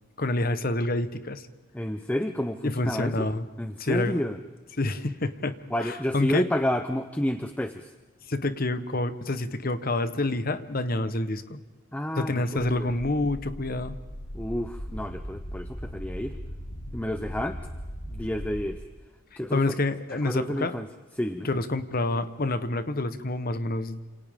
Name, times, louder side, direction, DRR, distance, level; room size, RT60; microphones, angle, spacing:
voice 1, 0.2-1.5 2.6-3.5 3.8-4.2 4.8-6.4 8.3-11.6 12.2-14.0 19.5-20.8 21.4-24.0, left 2 dB, 40° left, 11 dB, 1.1 m, -28 dB
voice 2, 1.7-3.1 3.6-4.4 5.7-7.9 11.9-12.9 14.3-16.4 16.9-17.6 18.1-18.8 19.4-19.6 20.2-20.9 21.2-21.5, left 1 dB, 5° left, 7 dB, 0.7 m, -30 dB
sound 1, 12.6-18.7, equal, 85° left, 3.1 m, -38 dB
29.0 x 27.0 x 3.7 m, 1.2 s
head